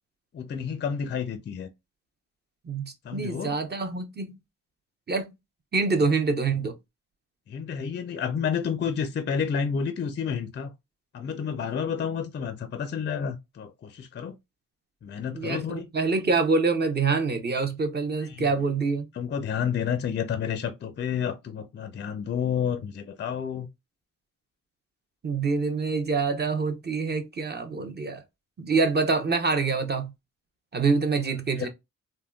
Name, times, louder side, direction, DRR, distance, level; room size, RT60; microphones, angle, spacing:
voice 1, 0.3-1.7 3.0-3.5 7.5-10.7 11.1-14.3 15.0-15.8 18.3-18.5 19.1-23.7 31.6-31.7, left 7 dB, 35° left, 0.4 m, -30 dB
voice 2, 2.7-4.4 5.1-5.3 5.7-6.7 15.3-19.1 25.2-28.2 28.6-30.1 30.7-31.7, right 4 dB, 30° right, 0.6 m, -26 dB
3.5 x 2.2 x 2.2 m
cardioid pair, 95°, 32 cm